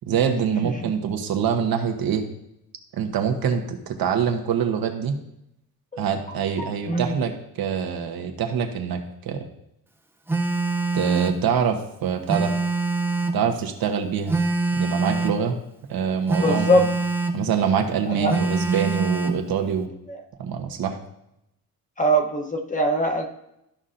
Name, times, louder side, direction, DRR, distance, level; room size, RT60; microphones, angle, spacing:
voice 1, 0.1-2.3 2.9-5.2 6.0-9.4 10.9-12.5 13.3-14.4 14.7-15.6 15.9-16.9 17.3-19.9 20.4-21.0, right 7 dB, 80° right, 3 dB, 1.1 m, -25 dB
voice 2, 0.6-0.9 5.9-6.1 6.6-7.1 16.3-16.9 18.1-18.3 20.1-20.2 22.0-23.2, equal, 20° left, 4 dB, 0.9 m, -22 dB
Telephone, 10.3-11.4 12.3-13.4 14.3-15.4 16.3-17.4 18.3-19.4, right 3 dB, 5° right, 0.5 m, -24 dB
13.0 x 5.5 x 2.6 m, 0.83 s
wide cardioid pair, 150°, 36 cm